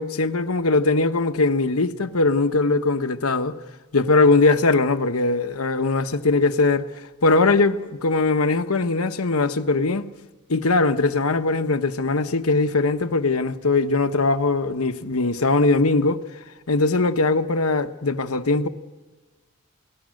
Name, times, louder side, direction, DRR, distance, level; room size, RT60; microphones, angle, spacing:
voice 1, 0.0-3.6 3.9-6.9 7.2-10.1 10.5-16.2 16.7-18.7, left 3 dB, 80° left, 1.1 m, -20 dB
29.0 x 20.0 x 6.5 m
head